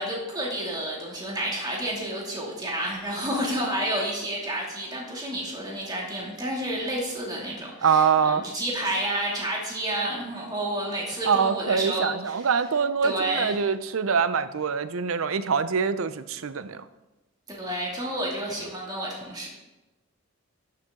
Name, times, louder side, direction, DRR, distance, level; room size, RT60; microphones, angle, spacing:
voice 1, 0.0-12.4 13.0-13.5 17.5-19.5, right 1 dB, 20° right, -3 dB, 2.6 m, -30 dB
voice 2, 7.8-8.4 11.3-16.8, right 6 dB, 90° right, 13 dB, 0.6 m, -24 dB
12.5 x 6.8 x 3.7 m, 1.0 s
head